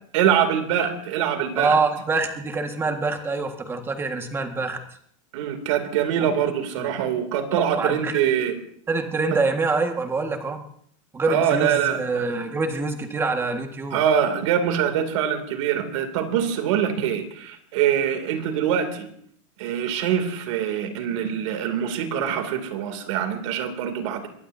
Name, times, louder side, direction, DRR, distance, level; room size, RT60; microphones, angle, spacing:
voice 1, 0.1-1.8 5.3-8.6 11.3-12.2 13.9-19.1 19.6-24.3, right 9 dB, 70° right, 7 dB, 2.7 m, -24 dB
voice 2, 1.6-4.8 6.2-6.3 6.8-6.9 7.8-8.2 8.9-10.6 11.1-14.0, right 3 dB, 15° right, 5 dB, 1.6 m, -25 dB
22.5 x 16.0 x 2.7 m, 0.65 s
supercardioid pair, 150°, 16 cm